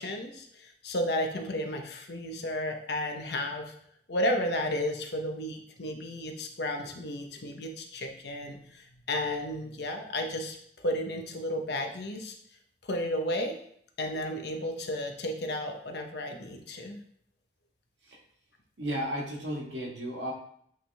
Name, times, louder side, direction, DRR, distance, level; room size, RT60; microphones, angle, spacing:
voice 1, 0.0-3.7 4.1-12.3 12.8-13.6 14.0-17.0, left 1 dB, 65° left, 4 dB, 0.9 m, -33 dB
voice 2, 18.8-20.3, equal, 80° right, -1 dB, 1.5 m, -34 dB
8.7 x 3.6 x 3.4 m, 0.66 s
head